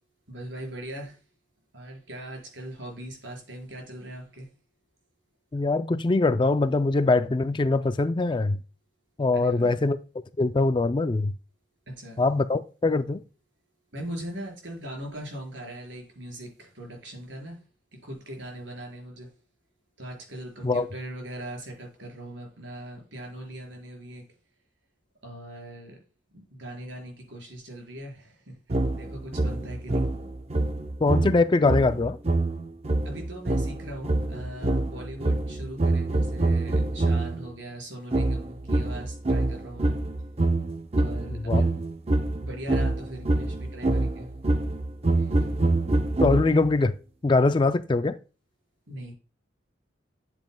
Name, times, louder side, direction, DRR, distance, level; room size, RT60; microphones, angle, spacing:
voice 1, 0.3-1.2 1.7-4.5 9.3-9.8 11.9-12.3 13.9-17.6 17.9-19.4 20.0-24.2 25.2-26.0 26.3-30.1 33.0-40.0 40.9-41.8 42.3-44.3 45.1-45.5 48.9-49.1, right 1 dB, 75° right, 4.6 m, -40 dB
voice 2, 5.5-8.6 9.2-10.0 10.4-11.3 12.2-13.2 20.6-20.9 31.0-32.2 41.5-41.6 46.2-46.9 47.2-48.2, left 3 dB, 25° left, 0.3 m, -22 dB
sound 1, 28.7-37.5 38.1-46.8, right 2 dB, 30° right, 0.6 m, -26 dB
10.5 x 7.5 x 2.2 m
head